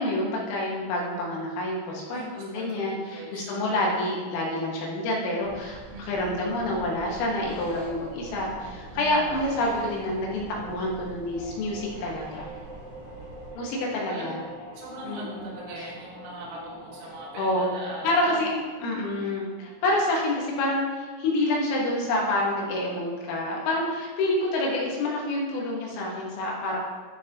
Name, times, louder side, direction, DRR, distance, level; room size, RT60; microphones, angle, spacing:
voice 1, 0.0-12.5 13.6-14.4 15.0-15.5 15.8-15.9 17.4-17.7 18.0-26.8, left 1 dB, 85° left, -3 dB, 4.1 m, -28 dB
voice 2, 2.1-3.8 5.9-6.5 8.9-9.4 14.1-14.3 14.8-18.4, right 2 dB, 80° right, -6 dB, 4.4 m, -41 dB
sound 1, 5.4-13.5, right 2 dB, 65° right, 2.2 m, -45 dB
sound 2, 7.4-20.4, right 1 dB, 60° left, 0.7 m, -45 dB
12.5 x 5.0 x 2.9 m, 1.4 s
omnidirectional pair, 5.8 m